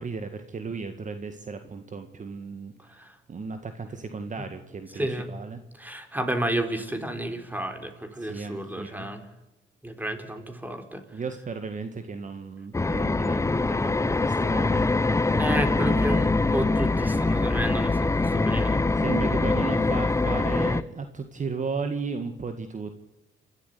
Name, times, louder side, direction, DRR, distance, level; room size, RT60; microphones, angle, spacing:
voice 1, 0.0-5.6 8.2-9.1 11.1-14.9 19.0-22.9, right 5 dB, 40° right, 8 dB, 1.8 m, -35 dB
voice 2, 4.9-5.3 5.8-9.2 9.8-11.0 15.4-18.8, right 1 dB, 10° right, 7 dB, 4.0 m, -31 dB
sound 1, 12.7-20.8, left 3 dB, 15° left, 0.8 m, -23 dB
29.5 x 13.0 x 8.5 m, 1.1 s
cardioid pair, 90°, 20 cm